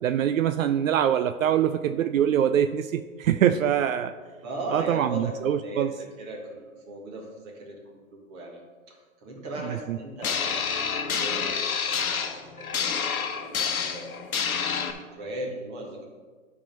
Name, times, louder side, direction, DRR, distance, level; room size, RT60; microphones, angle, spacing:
voice 1, 0.0-4.1 4.7-5.9 9.6-10.0, right 9 dB, 70° right, 10 dB, 0.5 m, -24 dB
voice 2, 4.4-7.8 8.1-8.6 8.9-9.0 9.2-10.6 11.2-14.3 14.6-16.1, right 1 dB, 20° right, -1 dB, 1.4 m, -38 dB
sound 1, 10.2-14.9, left 6 dB, 85° left, 1.1 m, -28 dB
10.5 x 3.7 x 5.3 m, 1.4 s
hypercardioid pair, 160°, 41 cm